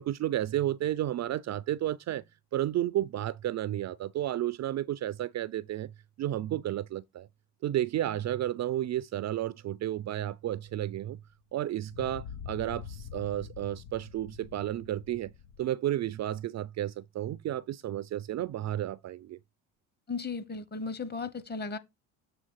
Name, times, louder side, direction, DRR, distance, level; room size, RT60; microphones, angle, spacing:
voice 1, 0.0-2.2 2.5-5.9 6.2-7.3 7.6-11.2 11.5-15.3 15.6-19.4, right 13 dB, 45° right, 0.5 m, -32 dB
distant explosions, 10.7-10.8 11.9-15.6, left 7 dB, 70° left, 1.1 m, -45 dB
voice 2, 20.1-21.8, left 4 dB, 25° left, 1.2 m, -35 dB
7.7 x 3.3 x 6.4 m
supercardioid pair, 80°, 40 cm